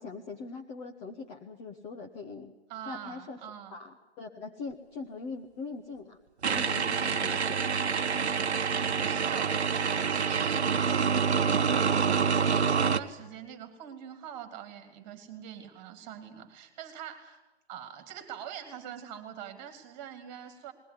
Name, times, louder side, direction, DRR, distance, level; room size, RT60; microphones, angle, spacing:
voice 1, 0.0-2.5 2.8-3.4 3.7-6.2 6.5-7.6, left 4 dB, 15° left, 3 dB, 1.0 m, -41 dB
voice 2, 2.7-3.8 8.4-17.4 17.7-20.7, right 9 dB, 25° right, 7 dB, 3.3 m, -44 dB
sound 1, 6.4-13.0, right 6 dB, 70° right, 1.1 m, -27 dB
21.0 x 18.0 x 9.8 m, 1.0 s
figure-of-eight pair, 140°, 33 cm